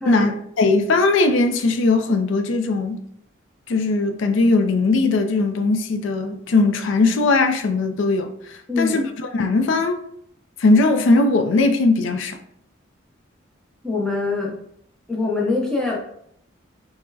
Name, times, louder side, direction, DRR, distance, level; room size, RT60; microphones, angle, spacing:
voice 1, 0.0-3.0 3.7-8.3 8.8-9.1 9.3-10.0 10.6-12.4, left 3 dB, 70° left, 0.4 m, -19 dB
voice 2, 13.8-14.6 15.1-16.0, left 3 dB, 5° left, 0.6 m, -23 dB
4.3 x 2.1 x 2.7 m
head